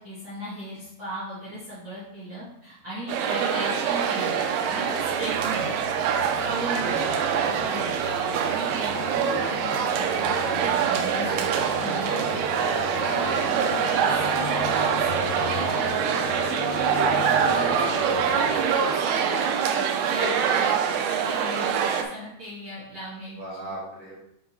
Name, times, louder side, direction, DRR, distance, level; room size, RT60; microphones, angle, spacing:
voice 1, 0.0-4.4 4.7-5.7 6.4-7.0 7.6-7.9 8.4-10.3 10.6-11.5 11.8-12.7 12.9-17.8 18.3-20.7 21.1-23.7, right 1 dB, 40° right, -11 dB, 1.5 m, -37 dB
sound 1, 3.1-22.0, right 7 dB, 80° right, 2.4 m, -25 dB
sound 2, 3.5-19.7, left 9 dB, 80° left, 2.4 m, -38 dB
voice 2, 6.7-7.8 12.2-12.4 23.4-24.1, right 1 dB, 25° right, -8 dB, 2.3 m, -38 dB
6.6 x 3.7 x 4.4 m, 0.78 s
omnidirectional pair, 4.9 m